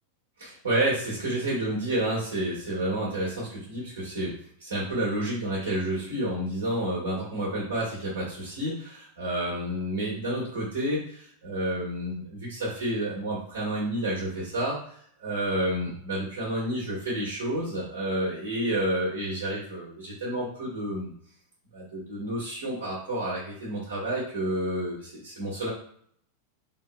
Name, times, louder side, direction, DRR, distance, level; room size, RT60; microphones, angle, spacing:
voice 1, 0.4-14.8 15.2-21.1 21.7-25.7, right 1 dB, 65° right, -6 dB, 1.4 m, -30 dB
3.8 x 2.8 x 2.2 m, 0.62 s
figure-of-eight pair, 90°, 0 cm